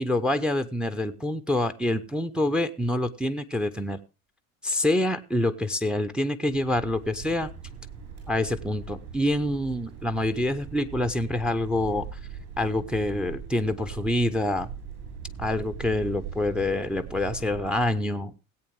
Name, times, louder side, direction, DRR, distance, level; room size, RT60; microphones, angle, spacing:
voice 1, 0.0-4.0 4.6-7.5 8.3-12.2 12.6-14.7 15.4-18.3, left 1 dB, ahead, 11 dB, 0.6 m, -26 dB
sound 1, 6.5-17.9, right 6 dB, 50° right, 7.1 m, -41 dB
17.5 x 8.5 x 3.5 m, 0.30 s
figure-of-eight pair, 75°, 43 cm